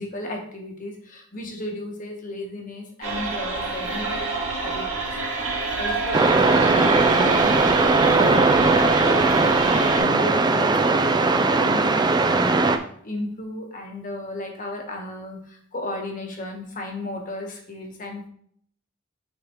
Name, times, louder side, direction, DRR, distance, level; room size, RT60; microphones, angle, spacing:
voice 1, 0.0-4.3 4.6-4.9 5.7-8.4 9.1-9.4 9.7-12.6 13.0-15.4 15.7-18.3, left 1 dB, 35° left, 2 dB, 1.2 m, -34 dB
sound 1, 3.0-10.0, right 3 dB, 75° right, 1.9 m, -27 dB
sound 2, 6.1-12.8, right 3 dB, 20° right, 0.4 m, -19 dB
9.7 x 3.8 x 3.0 m, 0.62 s
head